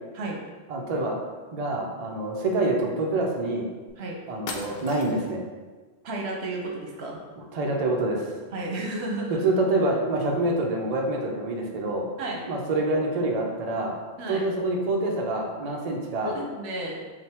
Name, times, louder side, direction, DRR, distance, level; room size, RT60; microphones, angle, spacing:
voice 1, 0.7-1.2 1.5-3.7 4.3-5.4 7.4-8.2 9.4-12.1 12.5-14.0 14.3-16.4, right 2 dB, 45° right, -1 dB, 0.6 m, -26 dB
sound 1, 3.9-4.0 4.5-5.4, left 3 dB, 65° left, 0.7 m, -38 dB
voice 2, 6.0-7.2 8.5-9.4 12.2-12.4 14.2-14.5 16.2-17.0, right 2 dB, 75° right, -1 dB, 1.0 m, -32 dB
3.7 x 2.7 x 4.3 m, 1.4 s
omnidirectional pair, 1.1 m